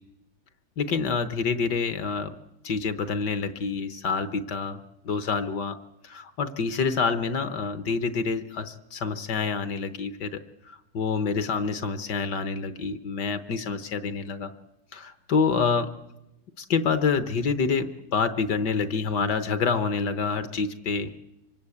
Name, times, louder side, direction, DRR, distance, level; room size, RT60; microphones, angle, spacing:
voice 1, 0.8-2.3 2.6-4.8 5.0-5.8 6.0-14.5 14.9-15.9 16.6-21.2, left 5 dB, 55° left, 11 dB, 1.5 m, -27 dB
25.5 x 23.5 x 8.5 m, 0.96 s
omnidirectional pair, 2.3 m